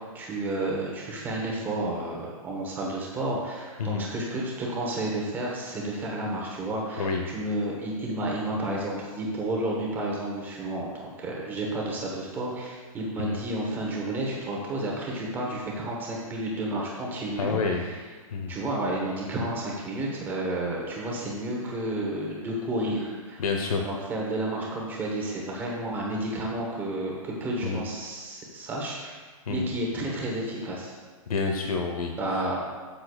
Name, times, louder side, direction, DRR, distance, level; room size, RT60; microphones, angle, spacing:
voice 1, 0.1-17.8 18.5-23.4 23.8-29.2 29.5-30.9 32.2-32.6, right 1 dB, 10° right, -3 dB, 1.1 m, -31 dB
voice 2, 17.4-17.8 18.3-18.5 23.4-23.9 27.6-27.8 29.5-29.7 31.3-32.4, left 4 dB, 85° left, 2 dB, 1.0 m, -28 dB
12.5 x 6.6 x 2.4 m, 1.4 s
hypercardioid pair, 165°, 18 cm